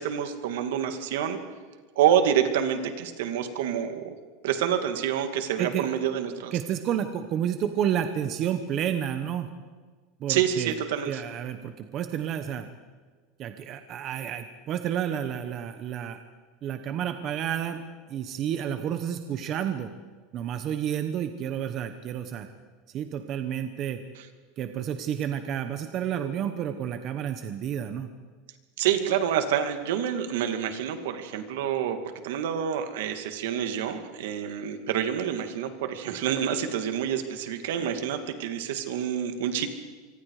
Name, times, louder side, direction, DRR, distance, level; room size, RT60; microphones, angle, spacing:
voice 1, 0.0-1.4 2.0-4.1 4.4-6.5 10.3-11.2 28.8-32.0 32.2-39.7, right 9 dB, 70° right, 7 dB, 2.5 m, -27 dB
voice 2, 6.5-9.5 10.2-10.8 11.0-12.7 13.4-16.2 16.6-17.8 18.1-19.9 20.3-22.5 22.9-24.0 24.6-28.1, right 9 dB, 30° right, 8 dB, 1.1 m, -30 dB
26.0 x 24.5 x 5.0 m, 1.4 s
supercardioid pair, 180°, 0 cm